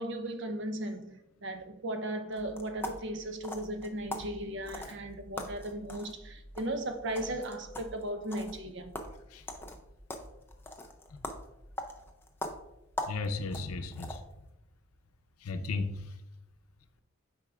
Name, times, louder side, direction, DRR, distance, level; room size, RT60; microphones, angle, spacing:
voice 1, 0.0-8.9, right 1 dB, 55° right, 0.7 m, -36 dB
sound 1, 2.3-14.4, left 1 dB, 10° left, 0.4 m, -43 dB
voice 2, 13.1-14.2 15.4-16.1, left 3 dB, 90° left, 0.6 m, -35 dB
8.2 x 4.9 x 2.4 m
head